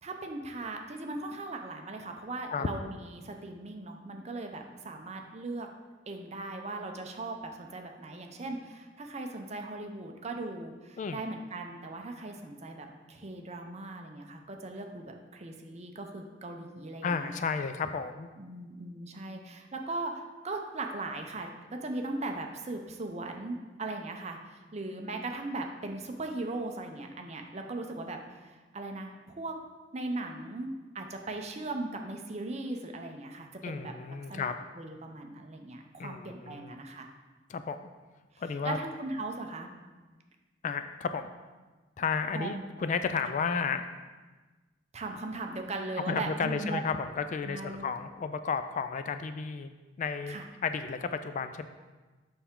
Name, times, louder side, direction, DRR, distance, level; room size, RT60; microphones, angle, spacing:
voice 1, 0.0-5.7 6.1-17.4 18.4-29.6 29.9-30.7 30.9-33.9 34.3-37.1 38.6-39.7 42.3-42.7 44.9-46.8 47.4-47.9 50.3-50.5, right 2 dB, 35° right, 4 dB, 0.6 m, -38 dB
voice 2, 17.0-18.3 33.6-34.5 36.0-36.8 37.5-37.8 38.4-38.8 40.6-41.3 42.0-43.9 46.0-50.4 50.6-51.7, left 5 dB, 40° left, 9 dB, 0.3 m, -32 dB
6.9 x 5.6 x 3.7 m, 1.3 s
head